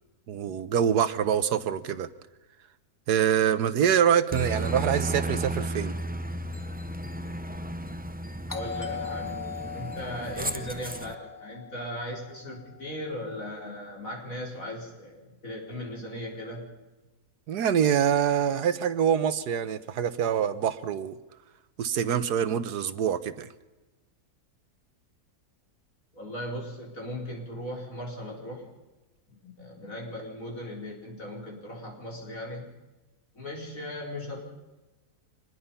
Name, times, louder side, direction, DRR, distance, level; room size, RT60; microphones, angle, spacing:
voice 1, 0.3-2.1 3.1-5.9 17.5-21.2 21.8-23.5, right 8 dB, 80° right, 14 dB, 1.5 m, -25 dB
Aircraft, 4.3-11.1, right 1 dB, 15° right, 0.3 m, -34 dB
voice 2, 8.5-9.4 9.7-16.7 26.1-28.7 29.4-32.7 33.3-34.4, left 1 dB, 55° left, -2 dB, 5.1 m, -38 dB
Doorbell, 8.5-13.1, left 6 dB, 10° left, 1.8 m, -40 dB
25.0 x 20.5 x 5.6 m, 1.1 s
omnidirectional pair, 1.7 m